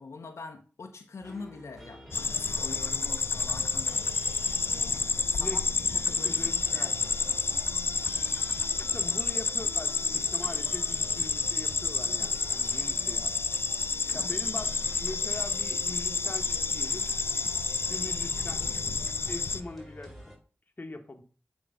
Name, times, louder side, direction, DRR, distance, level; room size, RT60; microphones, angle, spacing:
voice 1, 0.0-4.0 4.9-5.0 5.3-5.6 5.9-7.4 11.0-11.2 14.1-14.3, left 4 dB, 85° left, 4 dB, 0.8 m, -44 dB
sound 1, 1.2-20.4, equal, 5° right, 3.1 m, -47 dB
sound 2, 2.1-19.6, left 4 dB, 55° left, 0.4 m, -29 dB
voice 2, 5.3-5.6 6.2-7.1 8.7-13.3 14.1-17.1 17.9-18.7 19.2-20.3 20.8-21.2, left 2 dB, 40° left, 6 dB, 1.1 m, -42 dB
8.7 x 3.0 x 5.0 m, 0.38 s
cardioid pair, 45°, 5 cm